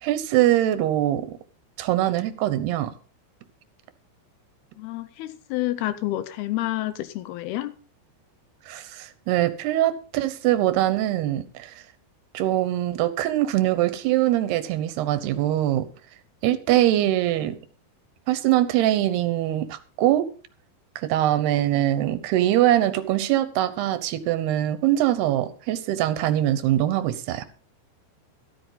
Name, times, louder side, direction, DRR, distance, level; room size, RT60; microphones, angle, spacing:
voice 1, 0.0-1.4 1.8-2.9 8.7-11.8 12.3-15.8 16.4-17.6 18.3-20.3 21.0-27.5, right 13 dB, 75° right, 2.9 m, -23 dB
voice 2, 4.8-7.7, left 15 dB, 80° left, 2.6 m, -29 dB
13.0 x 13.0 x 4.0 m
omnidirectional pair, 4.8 m